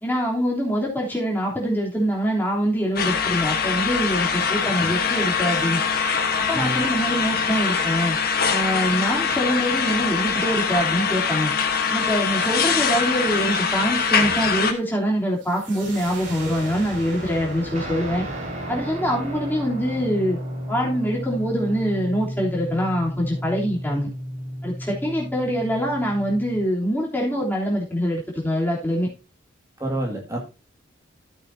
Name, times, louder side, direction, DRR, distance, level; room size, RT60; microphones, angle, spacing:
voice 1, 0.0-5.8 6.5-8.2 8.5-11.5 11.9-18.3 18.7-20.4 20.7-24.1 24.6-29.1, equal, 10° left, -3 dB, 3.3 m, -24 dB
sound 1, 3.0-14.7, left 6 dB, 50° left, 1.3 m, -23 dB
voice 2, 4.6-4.9 6.5-6.8 29.8-30.4, right 1 dB, 15° right, 0 dB, 2.1 m, -28 dB
sound 2, 15.4-20.9, right 1 dB, 65° right, 3.5 m, -37 dB
Guitar, 17.7-26.7, equal, 35° right, 3.3 m, -33 dB
13.5 x 8.1 x 2.8 m, 0.30 s
head